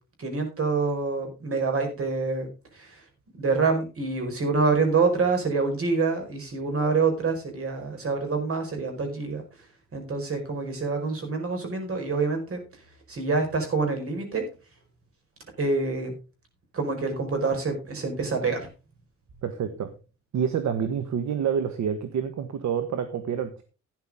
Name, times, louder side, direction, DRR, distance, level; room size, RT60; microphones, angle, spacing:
voice 1, 0.2-2.5 2.7-3.0 3.4-9.4 9.9-12.6 13.1-14.4 15.6-16.1 16.7-18.7, right 4 dB, 50° right, 5 dB, 4.9 m, -26 dB
voice 2, 19.4-19.9 20.3-23.6, right 7 dB, 65° right, 10 dB, 1.5 m, -28 dB
12.0 x 10.5 x 3.7 m, 0.32 s
cardioid pair, 90°, 30 cm